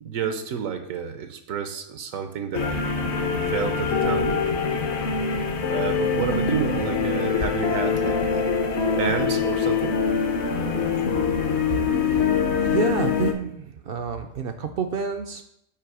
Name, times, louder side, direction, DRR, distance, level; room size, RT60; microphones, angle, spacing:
voice 1, 0.0-3.0 3.5-4.5 5.7-8.5 8.9-10.0, right 7 dB, 85° right, 7 dB, 1.1 m, -30 dB
sound 1, 2.5-13.3, left 5 dB, 60° left, 1.0 m, -24 dB
voice 2, 12.0-12.3 12.6-15.4, right 6 dB, 65° right, 7 dB, 0.6 m, -29 dB
8.5 x 3.1 x 4.8 m, 0.76 s
omnidirectional pair, 1.4 m